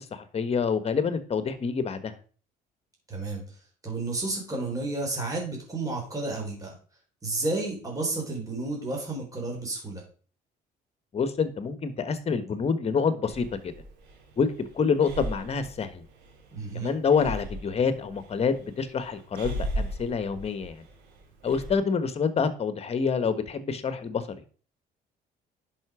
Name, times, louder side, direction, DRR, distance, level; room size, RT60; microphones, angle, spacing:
voice 1, 0.0-2.1 11.1-13.7 14.4-16.0 16.7-20.8 21.4-24.2, left 5 dB, 40° left, 12 dB, 1.3 m, -27 dB
voice 2, 3.1-3.4 3.8-6.7 7.2-10.0 16.5-17.0, right 2 dB, 20° right, -2 dB, 4.1 m, -31 dB
Breathing, 13.3-21.7, right 1 dB, 85° right, 3.7 m, -38 dB
10.5 x 5.9 x 4.9 m, 0.41 s
cardioid pair, 110°, 17 cm